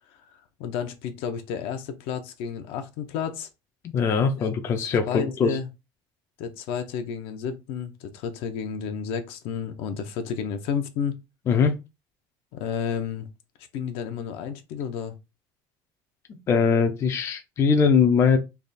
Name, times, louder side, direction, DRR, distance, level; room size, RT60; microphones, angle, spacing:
voice 1, 0.6-3.5 4.4-4.5 4.8-5.7 6.4-11.2 12.5-13.3 13.7-15.1, left 7 dB, 65° left, 0.7 m, -31 dB
voice 2, 3.9-5.6 11.5-11.7 16.5-18.4, left 6 dB, 25° left, 0.4 m, -21 dB
3.4 x 2.4 x 4.0 m
cardioid pair, 165°, 10 cm